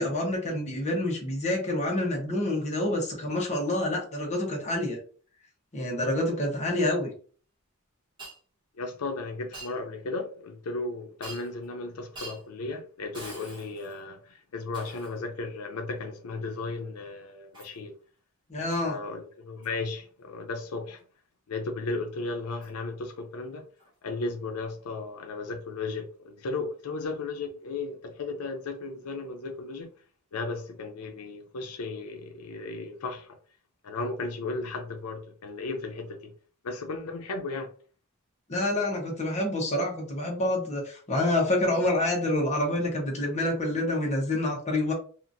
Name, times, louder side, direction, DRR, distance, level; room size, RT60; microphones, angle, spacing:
voice 1, 0.0-5.0 5.7-7.1 18.5-19.0 38.5-44.9, left 1 dB, 30° left, 0.9 m, -27 dB
Shatter, 8.2-8.4 9.5-9.8 11.2-11.6 12.1-12.4 13.1-14.0 14.7-15.2 17.5-17.8 18.7-18.9 19.6-19.8 22.6-22.7 23.8-23.9, right 2 dB, 20° right, 1.1 m, -44 dB
voice 2, 8.8-17.9 18.8-21.0 21.5-23.6 24.0-29.9 30.3-33.4 33.8-36.3 36.6-37.7, left 3 dB, 90° left, 0.5 m, -35 dB
2.8 x 2.4 x 2.6 m
head